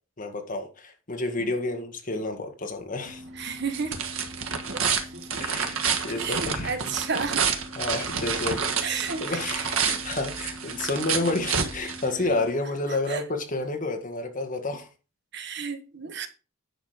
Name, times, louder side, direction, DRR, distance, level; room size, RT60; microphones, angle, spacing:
voice 1, 0.2-3.2 5.4-6.8 7.8-14.9, left 2 dB, 40° left, 1.9 m, -30 dB
sound 1, 3.1-12.5, right 6 dB, 80° right, 1.5 m, -29 dB
voice 2, 3.4-4.0 4.7-4.8 5.1-5.4 6.1-7.5 8.8-9.4 10.8-10.9 13.1-13.2 15.3-16.3, right 5 dB, 55° right, 1.3 m, -32 dB
10.0 x 6.4 x 5.0 m
head